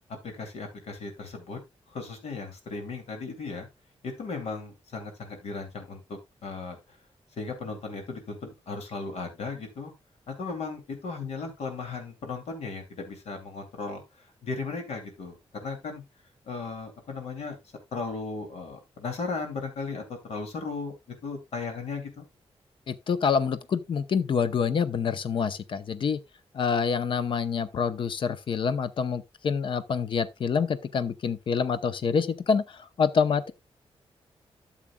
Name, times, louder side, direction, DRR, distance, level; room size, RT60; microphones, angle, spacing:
voice 1, 0.4-1.6 1.9-3.7 4.0-6.8 7.4-9.9 10.3-14.0 14.4-15.3 15.6-16.0 16.5-17.6 17.9-20.9 21.2-22.2, left 4 dB, 85° left, 2.7 m, -36 dB
voice 2, 22.9-26.2 26.5-32.6 33.0-33.5, left 6 dB, 50° left, 0.7 m, -26 dB
12.5 x 7.4 x 2.3 m
wide cardioid pair, 170°, 11 cm